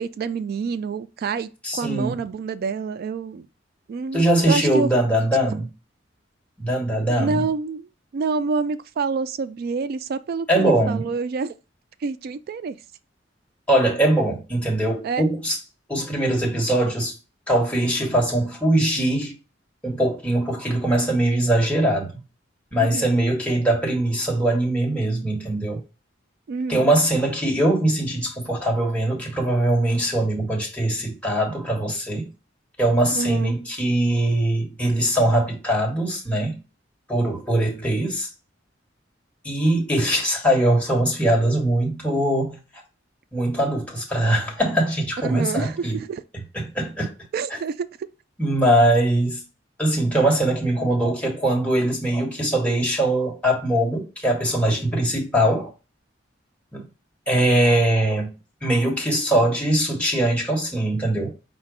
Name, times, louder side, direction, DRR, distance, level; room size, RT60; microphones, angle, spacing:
voice 1, 0.0-3.5 3.9-4.9 7.1-11.5 12.0-12.8 15.0-15.3 22.8-23.2 26.5-26.9 33.1-33.5 45.2-46.2 47.3-47.9, right 4 dB, 55° right, 0.3 m, -27 dB
voice 2, 1.6-2.2 4.1-5.6 6.6-7.4 10.5-11.1 13.7-15.6 15.9-17.1 17.5-19.3 19.8-22.1 22.7-25.8 26.7-32.3 32.8-36.6 37.1-38.3 39.4-42.6 43.3-46.0 46.5-47.1 47.5-47.6 48.4-49.4 49.8-55.7 56.7-56.8 57.3-58.3 58.6-61.3, right 1 dB, 5° left, 1.3 m, -21 dB
4.9 x 2.2 x 4.8 m
head